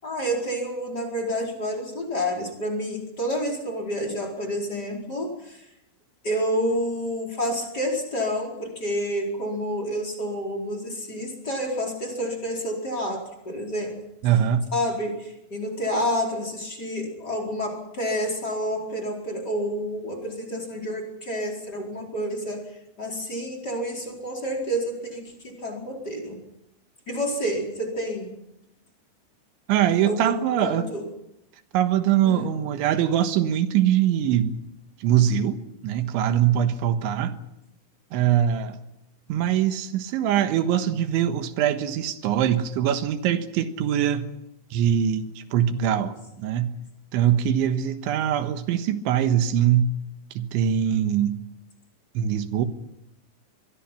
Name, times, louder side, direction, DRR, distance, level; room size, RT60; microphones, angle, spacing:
voice 1, 0.0-5.7 6.2-14.0 14.7-22.6 23.0-26.4 27.1-28.3 30.0-31.1 32.2-32.4, equal, 20° left, 4.7 m, -29 dB
voice 2, 14.2-14.7 29.7-30.9 31.7-34.6 35.0-37.4 38.1-38.8 39.3-44.3 44.7-46.8 47.1-49.9 50.4-51.4 52.2-52.7, right 10 dB, 90° right, 3.8 m, -23 dB
25.5 x 22.5 x 6.0 m
omnidirectional pair, 5.2 m